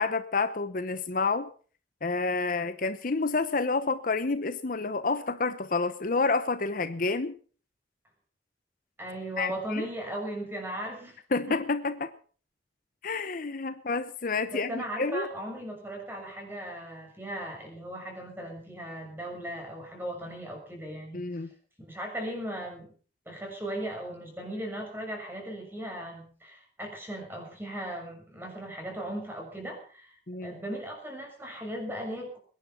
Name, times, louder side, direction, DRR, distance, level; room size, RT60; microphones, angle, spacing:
voice 1, 0.0-1.5 2.0-7.3 9.4-9.9 11.3-12.1 13.0-15.3 21.1-21.5 30.3-30.5, left 3 dB, 50° left, 11 dB, 0.9 m, -29 dB
voice 2, 9.0-11.2 11.5-11.6 14.5-21.3 21.8-22.9 23.2-32.4, right 1 dB, 15° right, 1 dB, 6.7 m, -37 dB
22.0 x 10.5 x 5.8 m, 0.42 s
head